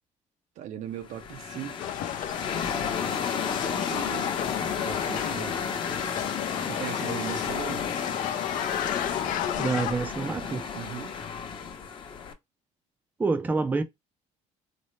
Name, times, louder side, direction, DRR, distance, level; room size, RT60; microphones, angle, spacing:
voice 1, 0.6-1.9 3.6-4.3 4.8-5.8 6.6-7.9 10.7-11.2, right 11 dB, 65° right, 0.6 m, -39 dB
sound 1, 1.0-12.3, left 6 dB, 40° left, 0.8 m, -32 dB
sound 2, 1.8-9.9, left 12 dB, 70° left, 0.5 m, -33 dB
voice 2, 9.6-10.7 13.2-13.8, right 4 dB, 15° right, 0.4 m, -27 dB
4.1 x 2.0 x 3.1 m
cardioid pair, 135°, 14 cm